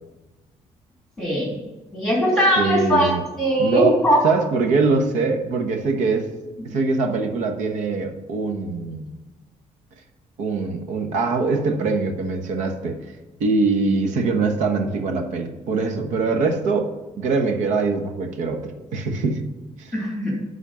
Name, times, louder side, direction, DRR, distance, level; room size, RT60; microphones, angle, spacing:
voice 1, 1.2-1.5 1.9-3.1 3.4-4.2 6.6-6.7 19.9-20.3, equal, 5° left, -3 dB, 2.8 m, -20 dB
voice 2, 2.6-3.2 3.6-3.9 4.2-6.3 6.6-9.1 10.4-13.0 13.4-16.9 17.2-19.4 19.8-19.9, right 4 dB, 90° right, 5 dB, 1.1 m, -23 dB
10.5 x 4.1 x 5.0 m, 1.2 s
cardioid pair, 175°, 12 cm